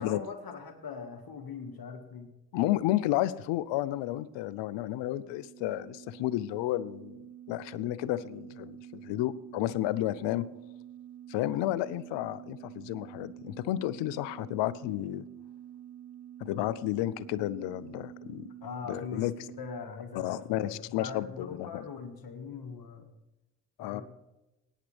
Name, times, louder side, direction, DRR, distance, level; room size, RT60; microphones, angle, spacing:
voice 1, 0.0-2.3 18.6-23.1 23.8-24.0, left 6 dB, 55° left, 5 dB, 1.7 m, -41 dB
voice 2, 2.5-10.5 11.3-15.3 16.4-18.5 18.9-19.3 20.2-21.8 23.8-24.0, left 15 dB, 80° left, 18 dB, 0.6 m, -32 dB
sound 1, 3.7-19.8, right 11 dB, 30° right, 1.0 m, -48 dB
17.0 x 9.8 x 3.4 m, 0.99 s
hypercardioid pair, 45°, 42 cm